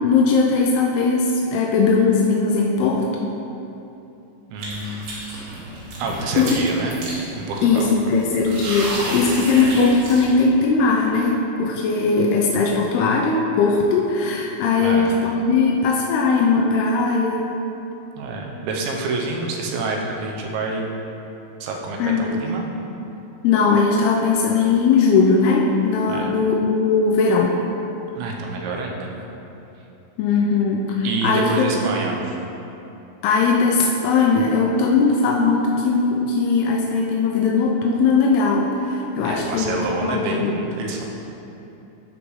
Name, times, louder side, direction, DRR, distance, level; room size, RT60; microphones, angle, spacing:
voice 1, 0.0-3.3 6.4-6.6 7.6-17.5 22.0-22.4 23.4-27.6 30.2-31.7 33.2-39.7 40.0-40.5, left 4 dB, 85° left, -2 dB, 2.3 m, -19 dB
voice 2, 4.5-5.1 6.0-7.0 7.3-7.9 14.8-15.1 18.2-20.9 21.6-22.7 26.1-26.4 28.2-29.1 31.0-32.4 39.2-41.0, right 3 dB, 85° right, 0 dB, 3.1 m, -27 dB
sound 1, 4.6-10.3, right 1 dB, 70° right, 3.7 m, -32 dB
14.0 x 5.0 x 3.2 m, 2.9 s
omnidirectional pair, 5.1 m